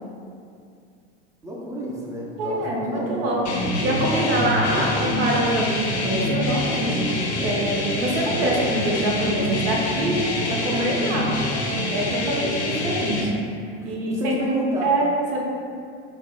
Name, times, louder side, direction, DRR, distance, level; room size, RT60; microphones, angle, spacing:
voice 1, 1.4-3.3 4.1-4.8 13.8-15.0, right 1 dB, 10° right, -4 dB, 0.4 m, -31 dB
voice 2, 2.4-11.3 11.9-13.4 13.8-14.4 14.8-15.4, right 1 dB, 75° right, -2 dB, 0.7 m, -25 dB
sound 1, 3.4-13.2, left 2 dB, 85° left, 0.5 m, -26 dB
2.4 x 2.0 x 3.5 m, 2.4 s
supercardioid pair, 115°, 32 cm